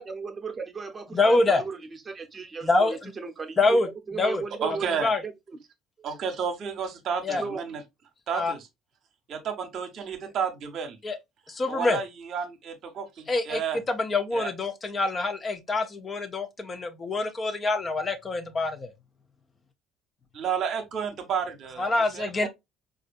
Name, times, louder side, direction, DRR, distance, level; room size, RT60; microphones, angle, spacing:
voice 1, 0.0-4.9 5.2-5.3 7.4-7.6, right 5 dB, 30° right, 0.8 m, -36 dB
voice 2, 1.1-1.6 2.6-3.1 3.6-3.9 4.2-4.4 5.0-5.2 7.2-7.4 8.3-8.5 11.0-11.2 11.5-12.0 13.3-13.6 13.9-18.9 21.8-22.5, left 2 dB, 30° left, 0.7 m, -25 dB
voice 3, 4.6-5.1 6.0-7.8 8.3-8.7 9.3-11.0 11.7-13.8 14.3-14.5 20.3-22.5, right 7 dB, 55° right, 0.9 m, -31 dB
4.2 x 2.5 x 2.4 m
hypercardioid pair, 65°, 0 cm